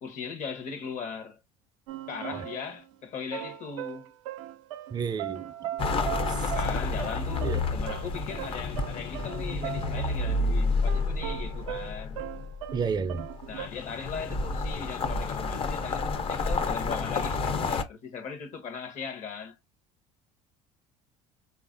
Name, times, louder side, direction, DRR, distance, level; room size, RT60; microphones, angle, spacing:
voice 1, 0.0-1.4 2.1-4.1 6.4-12.2 13.5-19.6, left 6 dB, 55° left, 0.9 m, -38 dB
sound 1, 1.9-2.9 3.3-10.5 10.7-13.7, right 12 dB, 90° right, 0.4 m, -39 dB
voice 2, 4.9-5.4 7.4-7.6 12.7-13.3, right 6 dB, 25° right, 0.4 m, -30 dB
sound 2, 5.8-12.3 13.4-17.8, left 4 dB, 35° left, 0.5 m, -31 dB
sound 3, 9.8-14.3, left 1 dB, 80° left, 0.6 m, -30 dB
3.4 x 2.4 x 2.4 m
supercardioid pair, 80°, 16 cm